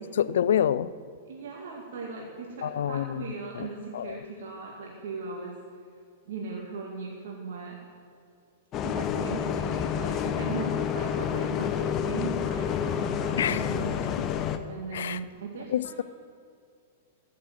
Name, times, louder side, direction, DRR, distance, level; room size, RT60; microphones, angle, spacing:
voice 1, 0.1-0.9 2.6-3.3 3.5-3.7 3.9-4.2 13.4-13.9 14.2-14.3 14.9-15.2 15.7-16.0, left 9 dB, 70° left, 17 dB, 0.4 m, -27 dB
voice 2, 1.3-5.5 6.3-7.8 8.8-14.3 14.7-16.0, right 4 dB, 65° right, -2 dB, 2.0 m, -38 dB
Bus, 8.7-14.6, left 8 dB, 35° left, 0.8 m, -29 dB
14.5 x 6.5 x 7.7 m, 2.3 s
hypercardioid pair, 110°, 0 cm